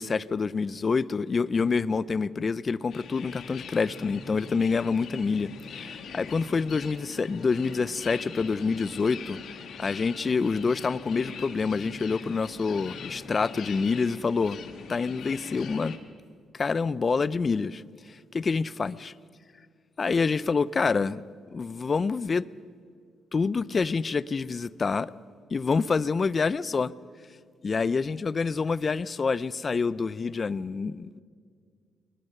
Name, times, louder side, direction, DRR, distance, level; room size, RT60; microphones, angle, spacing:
voice 1, 0.0-9.4 9.8-14.6 14.9-16.0 16.5-17.8 18.3-19.1 20.0-21.2 21.5-22.4 23.3-25.1 25.5-26.9 27.6-31.2, left 4 dB, 35° left, 0.5 m, -27 dB
sound 1, 2.9-16.0, left 6 dB, 65° left, 1.9 m, -42 dB
20.5 x 20.5 x 6.6 m
cardioid pair, 90°, 0 cm